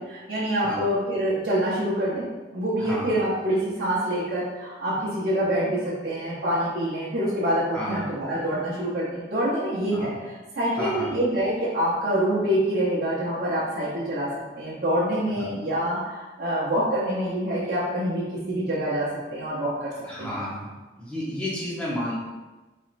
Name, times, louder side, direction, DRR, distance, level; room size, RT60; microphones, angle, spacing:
voice 1, 0.0-2.2 2.5-14.3 14.6-19.9 20.2-20.4, right 1 dB, 60° right, -10 dB, 0.9 m, -26 dB
voice 2, 10.8-11.1 15.4-15.5 20.0-20.7 21.0-22.2, left 1 dB, 5° left, -8 dB, 1.0 m, -31 dB
4.2 x 3.1 x 2.5 m, 1.2 s
head